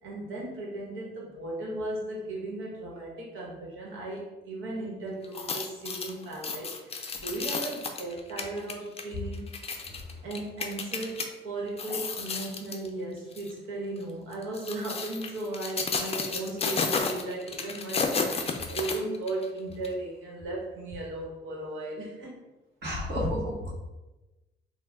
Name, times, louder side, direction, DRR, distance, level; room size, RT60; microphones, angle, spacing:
voice 1, 0.0-9.5 10.2-22.4, right 2 dB, 85° right, -3 dB, 1.2 m, -36 dB
sound 1, 5.2-11.3 11.7-12.9 13.3-13.5 14.3-19.5 19.8-19.9, left 4 dB, 30° left, 0.4 m, -32 dB
voice 2, 22.8-23.7, equal, 55° right, -6 dB, 1.3 m, -30 dB
3.2 x 2.3 x 3.5 m, 1.1 s
cardioid pair, 90°, 20 cm